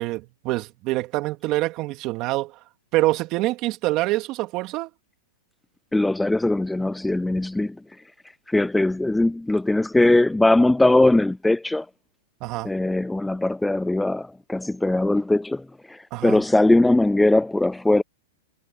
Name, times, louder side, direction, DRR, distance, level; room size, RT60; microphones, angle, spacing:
voice 1, 0.0-2.6 2.9-4.9 12.4-12.7 16.1-16.4, right 18 dB, 35° right, 3.0 m, -25 dB
voice 2, 5.9-7.8 8.5-11.9 12.6-18.0, left 2 dB, 5° left, 0.3 m, -20 dB
hypercardioid pair, 145°, 0 cm